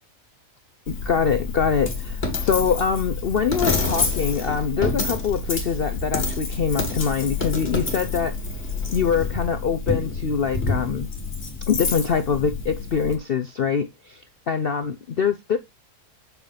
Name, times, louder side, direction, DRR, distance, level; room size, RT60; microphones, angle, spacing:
voice 1, 0.9-8.3 8.9-11.1 11.7-15.6, left 6 dB, 55° left, 0.7 m, -24 dB
Coin (dropping), 0.9-13.2, left 3 dB, 40° left, 2.1 m, -28 dB
7.8 x 6.1 x 3.4 m
omnidirectional pair, 1.7 m